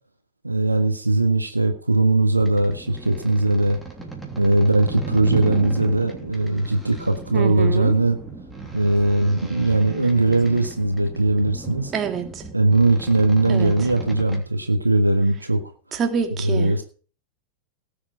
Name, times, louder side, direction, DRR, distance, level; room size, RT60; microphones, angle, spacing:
voice 1, 0.4-3.8 4.4-8.2 8.7-11.9 12.5-15.6 16.4-16.8, right 2 dB, 85° right, 6 dB, 1.6 m, -20 dB
sound 1, 2.4-14.4, right 3 dB, 5° right, 3.1 m, -36 dB
voice 2, 7.3-7.9 11.9-12.4 13.5-13.7 15.9-16.7, right 7 dB, 25° right, 5 dB, 2.3 m, -26 dB
18.0 x 7.2 x 5.1 m, 0.39 s
figure-of-eight pair, 90°, 0 cm